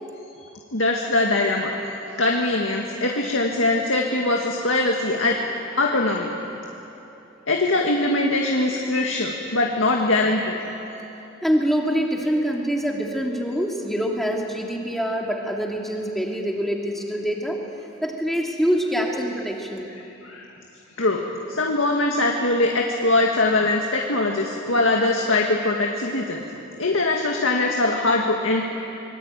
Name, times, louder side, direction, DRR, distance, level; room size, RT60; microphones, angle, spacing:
voice 1, 0.7-1.7 2.2-5.4 5.8-6.3 7.5-10.6 20.2-20.5 21.0-21.2 21.5-26.4 26.8-28.6, left 2 dB, 75° left, 0 dB, 2.0 m, -22 dB
voice 2, 11.4-17.6 18.0-19.9, equal, ahead, -1 dB, 2.6 m, -25 dB
25.0 x 22.5 x 9.1 m, 3.0 s
head